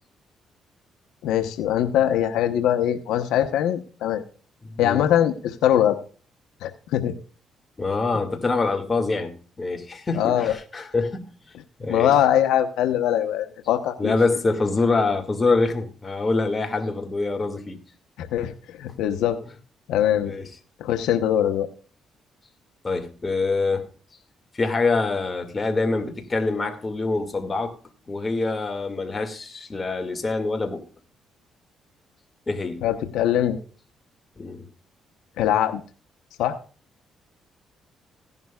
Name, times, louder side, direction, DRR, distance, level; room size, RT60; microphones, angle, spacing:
voice 1, 1.2-4.2 4.8-6.0 6.6-7.2 10.1-10.5 11.9-14.2 18.2-19.4 19.9-20.3 20.8-21.7 32.8-33.6 35.4-35.8 36.4-36.6, left 11 dB, 90° left, 0.9 m, -22 dB
voice 2, 4.7-5.0 7.8-11.2 11.8-12.1 14.0-17.8 20.3-20.5 22.8-23.9 24.5-27.8 28.1-30.9 32.5-32.9 34.4-34.7, left 3 dB, 25° left, 2.1 m, -25 dB
16.5 x 11.0 x 2.4 m
cardioid pair, 90°, 0 cm